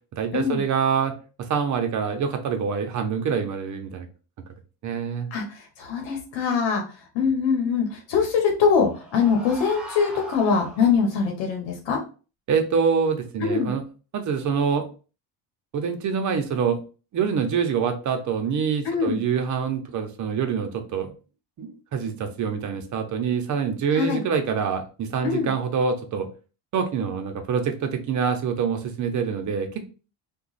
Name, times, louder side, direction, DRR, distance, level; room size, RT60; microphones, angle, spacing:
voice 1, 0.1-1.2 1.5-4.1 4.8-5.3 12.5-13.8 14.1-14.8 15.7-16.8 17.1-21.1 21.6-26.3 26.7-29.9, right 6 dB, 45° right, 6 dB, 0.6 m, -25 dB
voice 2, 5.8-6.8 7.1-12.0 13.4-13.7 18.8-19.2 23.9-24.2 25.2-25.5, left 6 dB, 85° left, 2 dB, 1.0 m, -23 dB
sound 1, 8.3-11.3, right 1 dB, ahead, 0.5 m, -41 dB
2.9 x 2.2 x 3.9 m, 0.36 s
cardioid pair, 150°, 43 cm